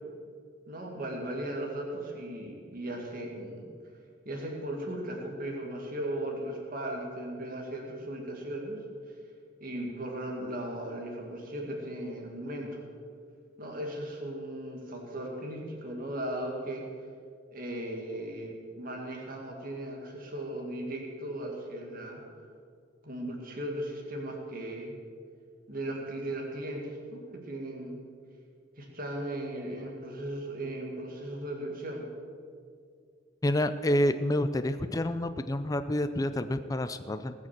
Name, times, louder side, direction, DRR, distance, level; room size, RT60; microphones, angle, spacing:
voice 1, 0.7-3.7 4.3-8.8 9.6-12.8 13.6-16.8 17.5-22.2 23.0-24.9 25.7-28.0 28.8-32.1, right 1 dB, 45° right, 0 dB, 1.9 m, -37 dB
voice 2, 33.4-37.3, left 1 dB, 20° left, 10 dB, 0.4 m, -28 dB
19.5 x 6.5 x 7.4 m, 2.2 s
head